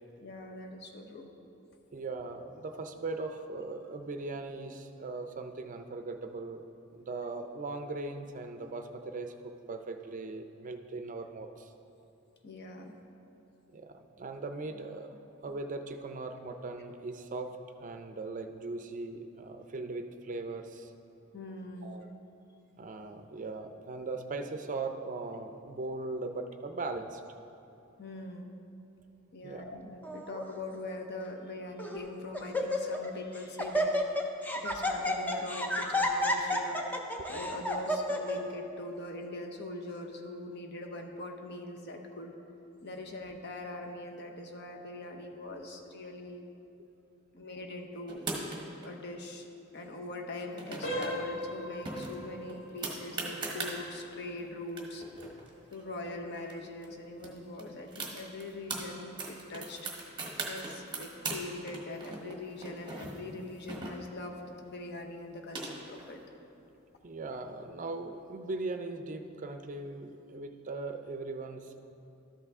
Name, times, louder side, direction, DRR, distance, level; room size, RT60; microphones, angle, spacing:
voice 1, 0.2-1.3 12.4-13.0 21.3-22.0 28.0-28.6 29.3-34.0 34.5-36.8 37.3-42.3 42.8-46.4 47.3-48.3 48.8-49.5 49.7-55.0 55.7-59.8 60.5-66.2, left 2 dB, 55° left, 3 dB, 0.8 m, -42 dB
voice 2, 1.9-6.6 6.9-11.7 13.7-17.5 17.8-20.9 21.8-22.1 22.8-27.2 29.4-29.7 37.2-37.3 67.0-71.8, right 3 dB, 40° right, 7 dB, 0.5 m, -39 dB
Laughter, 30.0-30.4 31.2-31.3 31.8-32.1 32.3-33.1 33.4-38.4, left 1 dB, 10° left, 0.5 m, -31 dB
sound 1, 48.1-48.9 50.3-51.1 51.4-51.5 51.9-53.8 54.4-54.5 54.7-56.5 56.8-56.9 57.2-58.8 59.2-61.4 61.7-64.3 65.1-66.1, right 3 dB, 25° right, 1.2 m, -39 dB
sound 2, 50.8-61.5 61.8-62.1 62.7-62.8 63.3-63.4, equal, 90° left, 1.4 m, -43 dB
12.5 x 5.7 x 3.6 m, 2.7 s
head